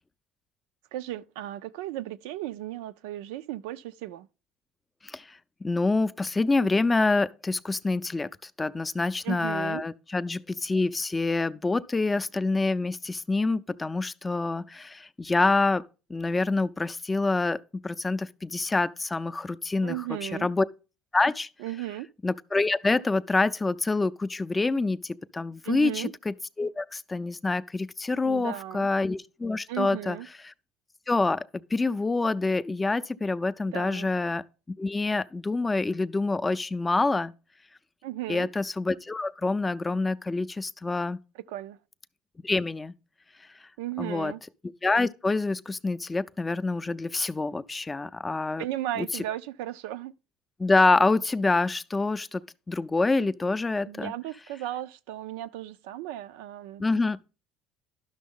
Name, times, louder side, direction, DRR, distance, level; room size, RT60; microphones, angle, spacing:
voice 1, 0.9-4.3 9.2-9.8 19.8-20.5 21.6-22.1 25.6-26.1 28.2-28.9 29.7-30.3 33.7-34.1 38.0-38.5 41.3-41.8 43.8-44.4 48.6-50.1 53.8-56.8, right 14 dB, 85° right, 0.4 m, -35 dB
voice 2, 5.6-15.8 16.1-20.6 21.1-21.5 22.2-30.2 31.1-31.5 31.7-34.4 34.8-37.3 38.3-41.2 42.4-42.9 44.0-44.3 44.8-48.6 49.0-49.1 50.6-52.4 52.7-54.1 56.8-57.2, left 3 dB, 15° left, 0.4 m, -26 dB
11.0 x 6.1 x 3.6 m
supercardioid pair, 100°, 0 cm